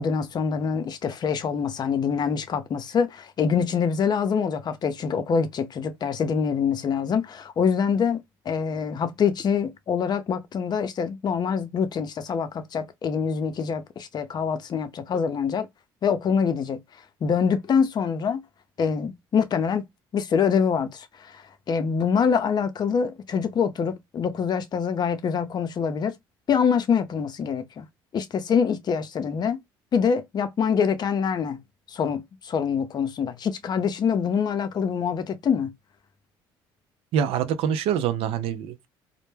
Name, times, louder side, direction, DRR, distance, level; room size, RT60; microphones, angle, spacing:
voice 1, 0.0-15.7 16.0-16.8 17.2-18.4 18.8-19.8 20.1-26.1 26.5-27.9 28.1-29.6 29.9-31.6 31.9-35.7, left 6 dB, 45° left, 0.5 m, -25 dB
voice 2, 37.1-38.9, right 8 dB, 75° right, 0.5 m, -25 dB
2.1 x 2.1 x 3.1 m
supercardioid pair, 75°, 10 cm